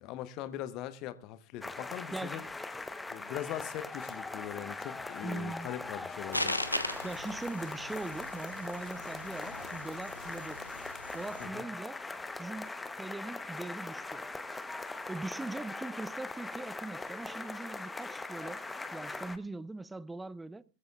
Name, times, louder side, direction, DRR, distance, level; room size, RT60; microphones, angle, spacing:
voice 1, 0.0-2.4 3.1-6.6 11.4-11.7, left 12 dB, 40° left, 1.1 m, -41 dB
sound 1, 1.6-19.4, left 3 dB, 10° left, 1.0 m, -41 dB
voice 2, 2.1-2.5 5.2-5.7 7.0-10.7 11.1-12.0 12.4-14.3 15.1-18.6 18.9-20.6, right 2 dB, 10° right, 0.6 m, -41 dB
sound 2, 6.3-11.5, left 1 dB, 85° left, 1.1 m, -39 dB
20.5 x 15.0 x 2.4 m
figure-of-eight pair, 90°, 0 cm